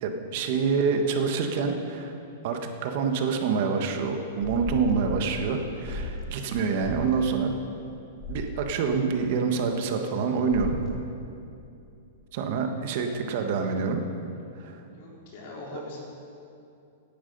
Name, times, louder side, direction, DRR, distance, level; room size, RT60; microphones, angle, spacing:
voice 1, 0.0-2.1 2.4-7.5 8.3-10.8 12.3-14.0 14.6-14.8, right 5 dB, 45° right, 4 dB, 1.3 m, -26 dB
sound 1, 4.4-5.3 5.8-6.2 6.8-7.1 8.2-8.5 10.5-10.9, left 2 dB, 10° left, 1.8 m, -34 dB
voice 2, 14.8-16.0, left 2 dB, 45° left, -3 dB, 3.9 m, -41 dB
17.0 x 10.5 x 5.4 m, 2.7 s
supercardioid pair, 165°, 0 cm